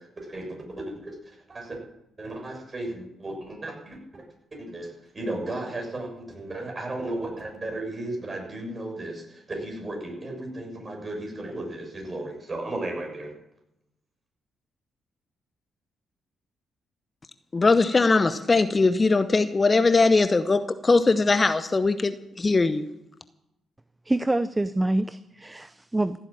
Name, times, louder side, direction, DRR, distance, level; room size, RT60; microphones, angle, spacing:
voice 1, 0.2-1.2 1.5-1.8 2.2-4.2 4.5-13.3, right 1 dB, 35° right, 1 dB, 6.7 m, -35 dB
voice 2, 17.5-22.9, left 3 dB, 35° left, 12 dB, 0.9 m, -21 dB
voice 3, 24.1-26.2, right 2 dB, 20° right, 14 dB, 0.6 m, -26 dB
15.0 x 8.2 x 8.8 m, 0.87 s
hypercardioid pair, 40°, 0 cm